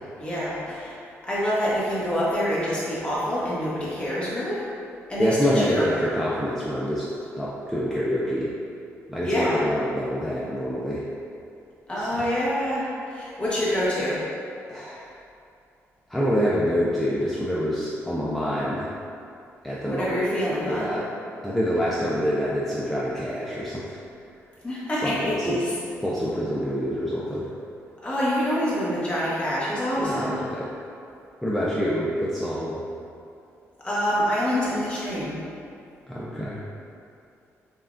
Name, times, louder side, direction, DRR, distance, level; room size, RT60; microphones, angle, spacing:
voice 1, 0.2-4.7 5.1-5.9 9.2-9.6 11.9-14.3 19.8-20.9 24.6-25.7 28.0-30.4 33.8-35.4, equal, 20° left, -8 dB, 1.0 m, -26 dB
voice 2, 5.2-7.1 7.4-8.5 9.1-11.0 12.0-12.3 14.7-15.0 16.1-18.9 19.6-20.2 20.6-21.1 21.4-24.0 25.0-25.6 26.0-27.5 30.0-30.7 31.4-32.8 36.1-36.6, equal, 5° left, -8 dB, 0.4 m, -26 dB
5.5 x 2.2 x 2.5 m, 2.6 s
cardioid pair, 125°, 5 cm